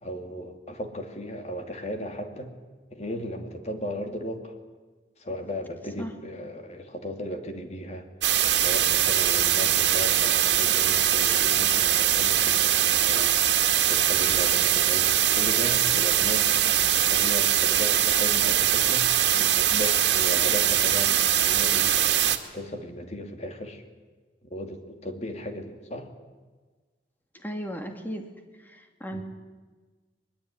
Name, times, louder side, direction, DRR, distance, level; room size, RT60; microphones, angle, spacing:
voice 1, 0.0-2.5 2.9-4.5 5.2-8.1 8.6-13.4 13.9-16.7 17.1-19.1 19.4-22.0 22.5-23.8 24.5-26.1 29.1-29.2, equal, 40° left, 5 dB, 2.9 m, -36 dB
sound 1, 8.2-22.4, right 11 dB, 85° right, 2.0 m, -22 dB
voice 2, 27.3-28.2 28.6-29.2, equal, 10° left, 4 dB, 2.7 m, -35 dB
22.0 x 22.0 x 9.9 m, 1.3 s
head